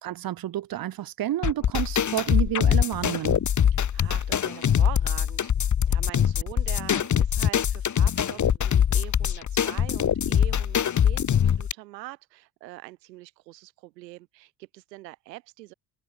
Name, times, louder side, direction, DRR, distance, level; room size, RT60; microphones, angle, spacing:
voice 1, 0.0-3.4, right 12 dB, 45° right, 1.3 m, -30 dB
sound 1, 1.4-11.7, left 9 dB, 35° left, 1.8 m, -23 dB
voice 2, 3.9-5.5 5.9-15.7, right 19 dB, 80° right, 6.8 m, -43 dB
hypercardioid pair, 60°, 49 cm